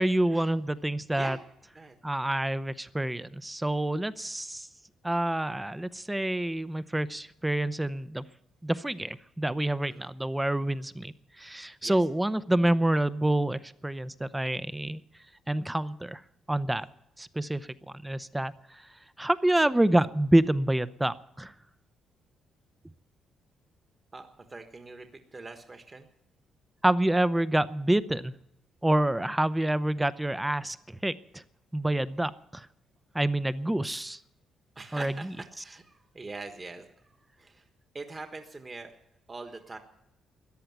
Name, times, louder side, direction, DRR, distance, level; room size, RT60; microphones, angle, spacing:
voice 1, 0.0-1.4 2.0-4.7 5.0-8.2 8.6-15.0 15.5-16.2 16.5-16.9 17.2-17.7 18.0-18.9 19.2-21.5 26.8-28.3 28.8-31.4 31.7-32.7 33.1-34.2 34.9-35.3, right 1 dB, 10° right, 15 dB, 0.7 m, -27 dB
voice 2, 24.1-26.1 34.7-37.7 37.9-38.9 39.3-39.8, right 3 dB, 25° right, 6 dB, 1.4 m, -43 dB
14.0 x 10.0 x 9.3 m, 0.82 s
cardioid pair, 90°, 0 cm